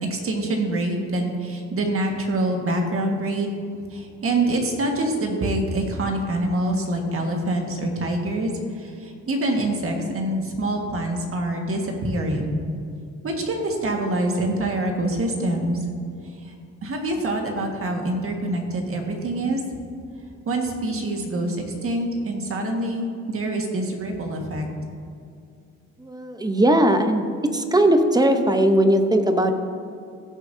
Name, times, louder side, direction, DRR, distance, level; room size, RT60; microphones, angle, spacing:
voice 1, 0.0-3.5 3.9-8.5 8.8-12.6 13.2-15.8 16.4-16.5 16.8-19.6 20.4-24.6, right 1 dB, 45° right, 2 dB, 1.7 m, -25 dB
voice 2, 26.0-27.2 27.5-29.5, right 1 dB, 15° right, 7 dB, 0.8 m, -19 dB
15.5 x 7.1 x 2.7 m, 2.4 s
cardioid pair, 90°, 30 cm